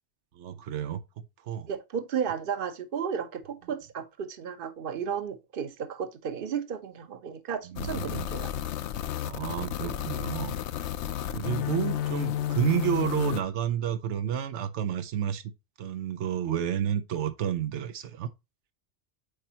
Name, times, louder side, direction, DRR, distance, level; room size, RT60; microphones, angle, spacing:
voice 1, 0.4-1.0 1.4-1.7 7.7-8.3 9.2-10.6 11.3-15.5 15.8-18.3, right 10 dB, 90° right, 1.0 m, -30 dB
voice 2, 1.7-8.5, right 7 dB, 55° right, 1.0 m, -33 dB
sound 1, 7.8-13.4, left 11 dB, 80° left, 0.9 m, -32 dB
8.4 x 4.5 x 2.8 m
omnidirectional pair, 1.1 m